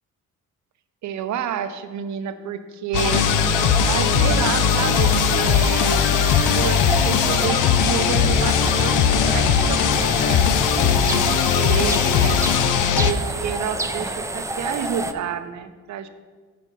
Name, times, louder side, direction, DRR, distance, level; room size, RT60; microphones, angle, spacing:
voice 1, 1.0-3.3 3.8-6.1 6.5-12.4 13.0-16.1, right 8 dB, 70° right, 10 dB, 0.7 m, -29 dB
sound 1, 2.9-13.1, left 8 dB, 90° left, 0.5 m, -19 dB
sound 2, 3.0-15.1, right 2 dB, 10° right, 0.5 m, -29 dB
9.2 x 4.8 x 5.4 m, 1.4 s
cardioid pair, 90°, 30 cm